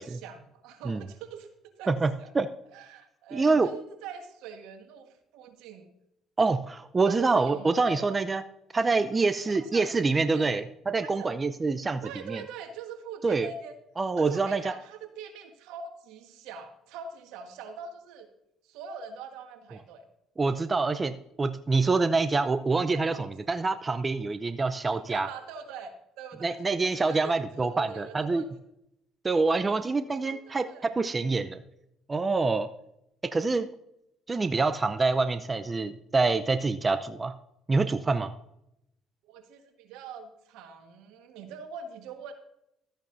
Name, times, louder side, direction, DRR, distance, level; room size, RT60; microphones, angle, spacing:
voice 1, 0.0-1.5 1.8-2.3 2.7-5.9 7.0-8.2 8.9-9.2 9.5-10.5 11.0-11.3 12.0-13.8 14.2-18.3 18.6-20.0 22.9-23.3 24.9-26.6 27.1-28.5 30.2-30.9 34.5-34.7 39.2-42.3, right 6 dB, 80° right, 6 dB, 1.4 m, -43 dB
voice 2, 1.9-2.5 3.3-3.7 6.4-8.4 8.7-12.0 12.3-12.4 13.2-13.5 14.0-14.7 20.4-23.1 23.5-25.3 26.4-28.4 29.2-30.7 31.0-31.6 32.1-32.7 33.2-33.7 34.3-37.3 37.7-38.3, right 3 dB, 25° right, 11 dB, 0.6 m, -26 dB
13.0 x 8.9 x 2.6 m, 0.82 s
supercardioid pair, 75°, 0 cm